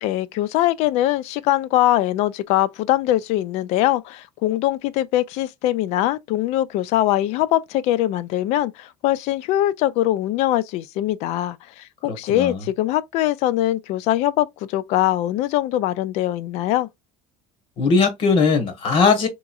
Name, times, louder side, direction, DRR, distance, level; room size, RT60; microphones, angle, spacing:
voice 1, 0.0-16.9, left 14 dB, 65° left, 0.4 m, -22 dB
voice 2, 12.1-12.6 17.8-19.3, left 4 dB, 45° left, 1.1 m, -19 dB
3.5 x 3.0 x 2.4 m
cardioid pair, 145°, 12 cm